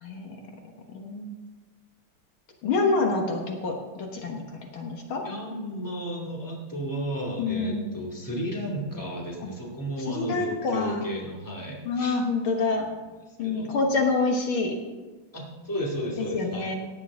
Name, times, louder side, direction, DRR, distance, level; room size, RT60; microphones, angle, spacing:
voice 1, 0.9-1.3 2.6-4.4 4.7-5.2 7.4-7.9 10.2-11.1 11.9-12.8 13.4-14.7 16.3-16.7, left 3 dB, 70° left, 2 dB, 2.1 m, -26 dB
voice 2, 5.2-12.2 12.7-12.9 13.4-13.9 15.3-16.7, equal, 10° left, -3 dB, 2.3 m, -33 dB
15.5 x 9.7 x 3.7 m, 1.2 s
omnidirectional pair, 2.3 m